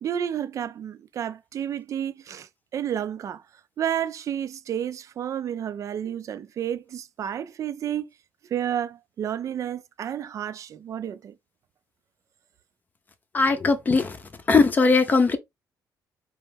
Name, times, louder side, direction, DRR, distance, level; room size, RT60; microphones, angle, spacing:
voice 1, 0.0-3.4 3.8-8.1 8.5-11.3, right 9 dB, 50° right, 0.4 m, -31 dB
voice 2, 13.3-14.2 14.5-15.4, left 4 dB, 25° left, 0.6 m, -19 dB
4.4 x 3.0 x 3.4 m
cardioid pair, 170°, 7 cm